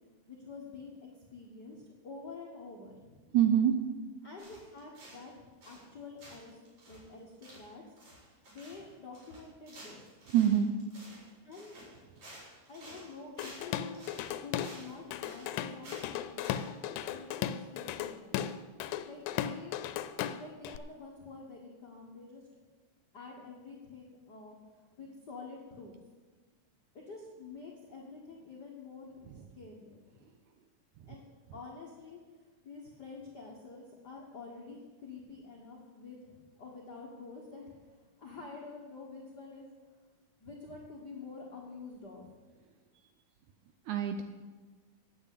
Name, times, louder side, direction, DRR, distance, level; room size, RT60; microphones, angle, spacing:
voice 1, 0.3-1.0 1.3-3.3 4.2-6.6 6.9-7.8 8.5-10.1 11.4-11.8 12.7-14.0 14.4-18.2 19.1-19.8 20.4-22.4 23.1-25.9 26.9-30.3 31.1-31.2 31.5-39.7 40.4-42.3, left 4 dB, 60° left, -2 dB, 1.0 m, -48 dB
voice 2, 3.3-3.7 10.3-10.7 43.9-44.2, right 10 dB, 80° right, 7 dB, 1.8 m, -25 dB
sound 1, 4.4-5.3 5.6-5.9 6.2-16.7, right 1 dB, 50° right, 5.6 m, -52 dB
Drum kit / Drum, 13.4-14.8 15.1-20.8, left 10 dB, 85° left, 2.3 m, -36 dB
9.1 x 8.9 x 8.4 m, 1.3 s
omnidirectional pair, 4.0 m